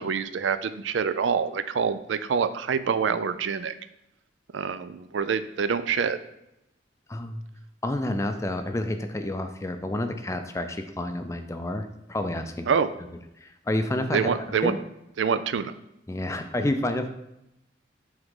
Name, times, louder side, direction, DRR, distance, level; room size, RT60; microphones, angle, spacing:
voice 1, 0.0-3.7 4.5-6.2 12.7-12.9 14.1-14.7 15.2-15.7, right 6 dB, 85° right, 12 dB, 0.4 m, -26 dB
voice 2, 7.1-7.4 7.8-12.7 13.4-14.8 16.1-17.1, left 1 dB, 15° left, 7 dB, 0.4 m, -29 dB
7.8 x 3.6 x 3.7 m, 0.86 s
head